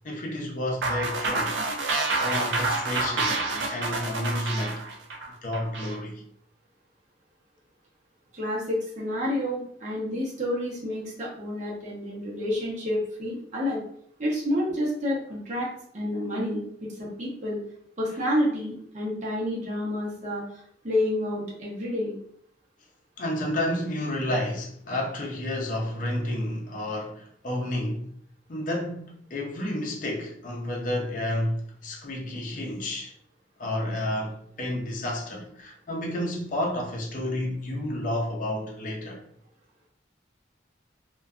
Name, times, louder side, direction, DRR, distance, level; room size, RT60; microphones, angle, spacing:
voice 1, 0.0-1.6 2.2-4.8 5.4-6.2 23.2-28.1 28.5-33.1 33.6-39.2, left 1 dB, 45° left, 0.5 m, -30 dB
sound 1, 0.8-6.0, right 3 dB, 80° right, 0.4 m, -28 dB
voice 2, 8.3-13.8 14.2-17.6 18.0-22.1, left 1 dB, 40° right, 0.7 m, -29 dB
2.6 x 2.2 x 2.3 m
head